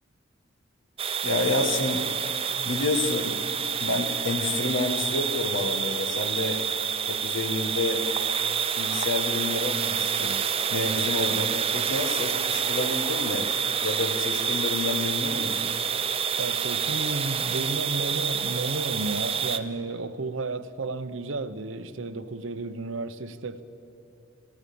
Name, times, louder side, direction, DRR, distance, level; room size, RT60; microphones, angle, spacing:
sound 1, 1.0-19.6, right 7 dB, 30° right, 0.7 m, -28 dB
voice 1, 1.2-2.1 2.6-3.4 3.8-6.6 7.1-8.1 8.8-10.4 10.7-13.5 13.8-15.7, left 2 dB, 70° left, 1.7 m, -29 dB
voice 2, 16.4-23.6, right 3 dB, 70° right, 0.9 m, -32 dB
27.0 x 15.5 x 7.1 m
head